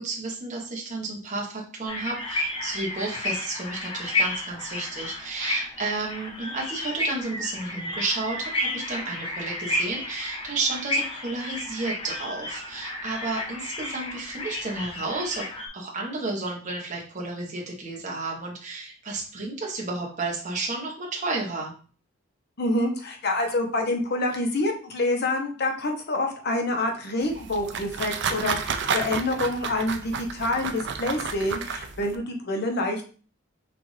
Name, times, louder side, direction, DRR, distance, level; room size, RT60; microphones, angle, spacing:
voice 1, 0.0-15.5 15.7-21.7, right 3 dB, 40° right, -1 dB, 1.2 m, -32 dB
sound 1, 1.9-15.7, left 1 dB, 30° left, 0.9 m, -32 dB
voice 2, 22.6-33.1, left 2 dB, 55° left, 3 dB, 0.9 m, -27 dB
sound 2, 27.2-32.2, right 6 dB, 60° right, 0.5 m, -31 dB
6.0 x 2.5 x 3.2 m, 0.40 s
head